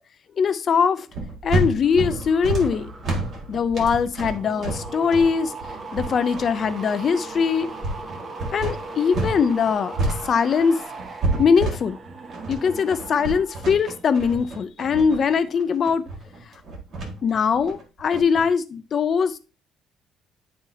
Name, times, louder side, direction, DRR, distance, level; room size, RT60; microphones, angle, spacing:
voice 1, 0.4-1.1 1.4-2.9 3.5-5.5 5.9-7.7 8.5-10.8 11.4-12.0 12.5-16.0 17.2-19.4, left 6 dB, 35° left, 0.5 m, -21 dB
sound 1, 1.1-13.8 14.1-14.5, right 3 dB, 25° right, 0.8 m, -38 dB
sound 2, 1.1-9.4 9.7-18.4, right 2 dB, 45° right, 1.7 m, -29 dB
10.5 x 4.3 x 2.7 m
cardioid pair, 175°, 0 cm